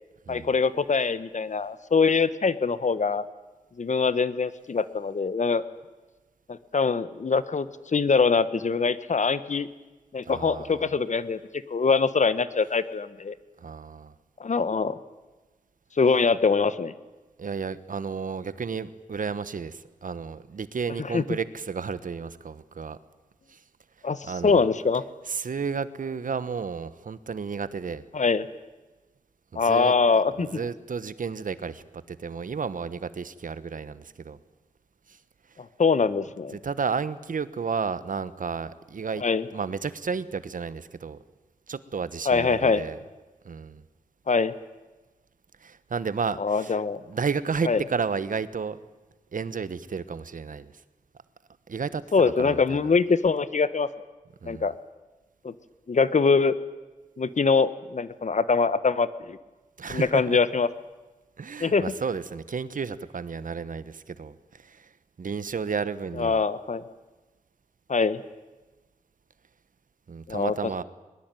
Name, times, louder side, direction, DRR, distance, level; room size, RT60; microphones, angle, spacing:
voice 1, 0.3-3.3 3.8-5.6 6.5-9.7 10.1-13.3 14.4-15.0 16.0-16.9 21.0-21.2 24.0-25.0 28.1-28.5 29.5-30.5 35.8-36.6 39.2-39.4 42.2-42.8 44.3-44.5 46.4-47.0 47.6-47.8 52.1-53.9 54.4-54.7 55.4-55.5 55.9-56.6 57.2-59.4 59.9-60.7 61.6-61.9 66.2-66.8 67.9-68.2 70.3-70.5, left 4 dB, 60° left, 15 dB, 1.2 m, -23 dB
voice 2, 10.2-10.9 13.6-14.1 17.4-23.0 23.5-23.6 24.2-24.7 25.3-28.0 29.5-29.9 30.4-34.4 35.1-35.2 36.5-39.2 39.5-41.2 41.7-43.0 43.4-43.8 45.6-46.8 47.1-48.8 49.3-50.7 51.7-52.8 54.4-54.7 59.8-60.4 61.4-64.9 65.2-66.4 70.1-70.8, right 5 dB, 70° right, 15 dB, 1.1 m, -32 dB
22.0 x 21.0 x 9.1 m, 1.2 s
wide cardioid pair, 90°, 14 cm